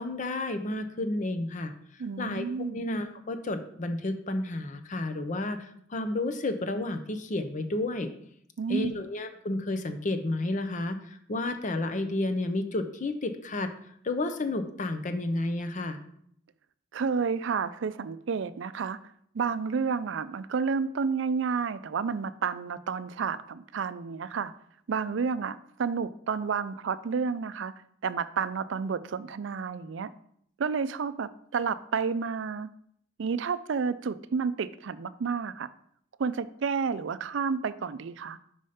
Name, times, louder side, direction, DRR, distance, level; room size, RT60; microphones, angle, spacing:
voice 1, 0.0-1.7 2.2-8.1 8.7-13.7 14.0-16.0, left 2 dB, 40° left, 9 dB, 0.6 m, -31 dB
voice 2, 2.0-2.8 8.6-9.0 16.9-19.0 19.3-24.5 24.9-27.7 28.0-30.1 30.6-32.7 33.2-35.7 36.2-38.4, right 5 dB, 65° right, 13 dB, 0.4 m, -30 dB
5.4 x 5.0 x 5.6 m, 0.68 s
head